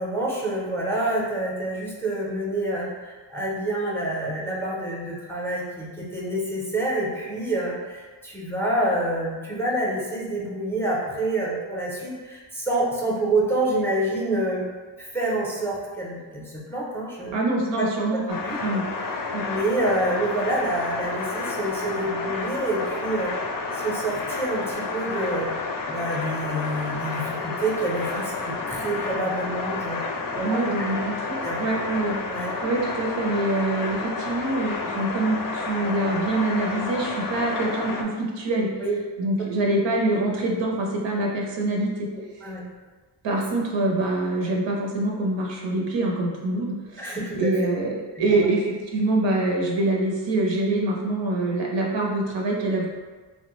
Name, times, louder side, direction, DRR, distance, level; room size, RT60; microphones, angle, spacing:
voice 1, 0.0-14.6 15.0-17.3 17.8-17.9 18.3-18.6 19.1-23.3 23.7-25.5 25.9-30.0 30.3-30.9 31.3-31.6 32.3-32.5 38.8-39.0 42.1-42.6 43.3-43.4 47.0-47.7 48.2-48.5, right 1 dB, 5° left, -4 dB, 0.6 m, -27 dB
voice 2, 17.3-18.8 19.3-19.5 30.4-38.7 39.2-42.1 43.2-52.9, right 2 dB, 80° right, -1 dB, 0.7 m, -25 dB
sound 1, 18.3-38.0, left 3 dB, 50° left, 0.5 m, -30 dB
3.2 x 2.1 x 3.0 m, 1.4 s
wide cardioid pair, 105°, 43 cm